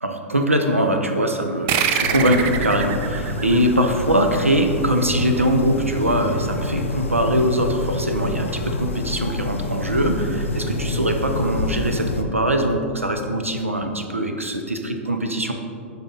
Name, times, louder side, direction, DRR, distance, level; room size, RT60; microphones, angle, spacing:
voice 1, 0.0-15.5, right 1 dB, 85° right, 5 dB, 0.7 m, -22 dB
sound 1, 1.7-4.7, right 8 dB, 35° right, 0.4 m, -25 dB
sound 2, 2.0-12.2, left 2 dB, 75° left, 0.6 m, -27 dB
10.5 x 4.1 x 3.8 m, 2.5 s
figure-of-eight pair, 100°, 7 cm